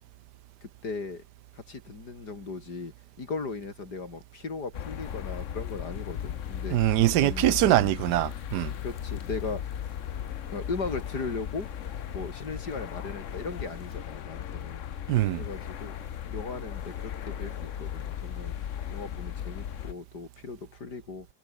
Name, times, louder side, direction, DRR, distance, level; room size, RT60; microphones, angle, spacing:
voice 1, 0.6-1.2 1.6-6.8 7.2-7.9 8.8-9.6 10.5-11.7 12.1-14.8 15.3-16.0 16.3-18.5 18.9-21.3, left 4 dB, 75° left, 4.1 m, -37 dB
sound 1, 4.7-19.9, left 10 dB, 55° left, 1.1 m, -37 dB
voice 2, 6.7-8.7 15.1-15.4, right 14 dB, 90° right, 1.2 m, -23 dB
omnidirectional pair, 1.8 m